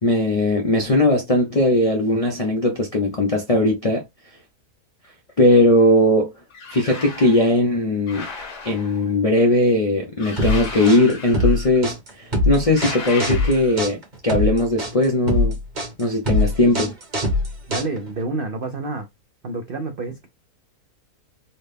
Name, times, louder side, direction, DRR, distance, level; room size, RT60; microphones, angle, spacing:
voice 1, 0.0-4.0 5.4-6.3 6.7-8.3 8.6-15.5 16.0-16.9, left 1 dB, 60° left, 0.3 m, -19 dB
sound 1, 6.5-7.5 8.1-9.1 10.2-11.8 12.7-13.9, left 4 dB, 80° left, 1.7 m, -35 dB
sound 2, 10.4-18.2, left 1 dB, 35° right, 1.0 m, -22 dB
voice 2, 17.7-19.1 19.4-20.3, right 3 dB, 75° right, 0.5 m, -28 dB
4.1 x 2.1 x 3.4 m
omnidirectional pair, 1.7 m